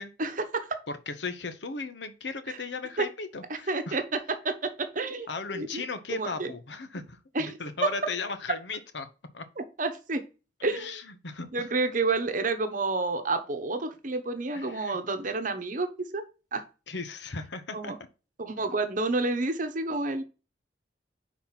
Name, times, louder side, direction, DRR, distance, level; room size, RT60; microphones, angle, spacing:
voice 1, 0.2-0.8 3.0-3.1 3.5-5.3 5.5-5.8 6.1-6.5 7.3-7.9 9.6-10.2 10.6-10.9 11.5-16.2 16.5-16.6 17.7-18.0 18.4-20.2, right 3 dB, 45° right, 0.9 m, -29 dB
voice 2, 0.9-4.0 5.3-9.1 9.3-9.4 10.6-11.5 14.5-15.0 16.9-17.9, left 4 dB, 85° left, 1.0 m, -36 dB
5.8 x 4.2 x 5.8 m
head